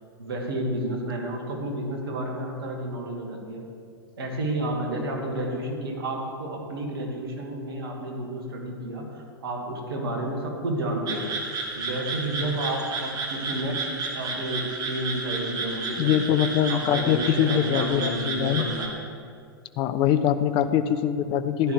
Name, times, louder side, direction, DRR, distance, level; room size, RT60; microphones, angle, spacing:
voice 1, 0.2-3.6 4.2-11.3 11.7-13.9 14.1-16.3 16.7-19.0 21.2-21.3 21.6-21.7, right 1 dB, 75° right, 1 dB, 2.2 m, -31 dB
sound 1, 11.1-18.9, right 3 dB, 30° right, 2.0 m, -32 dB
voice 2, 16.0-18.7 19.8-21.7, left 10 dB, 40° left, 12 dB, 0.7 m, -23 dB
15.0 x 11.0 x 3.4 m, 2.2 s
hypercardioid pair, 100°, 13 cm